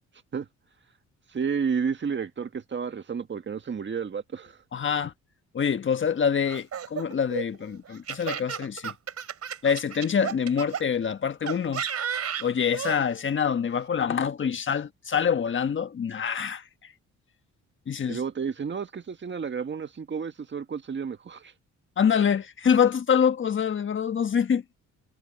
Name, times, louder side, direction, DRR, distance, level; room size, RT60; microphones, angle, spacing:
voice 1, 1.3-4.6 18.1-21.5, right 6 dB, 40° right, 1.7 m, -31 dB
voice 2, 4.7-5.1 5.5-8.9 9.6-11.8 12.4-16.6 17.9-18.2 22.0-24.6, left 7 dB, 40° left, 1.4 m, -25 dB
Laughter, 6.5-10.8 11.5-13.0, right 8 dB, 55° right, 4.6 m, -33 dB
cardioid pair, 90°, 30 cm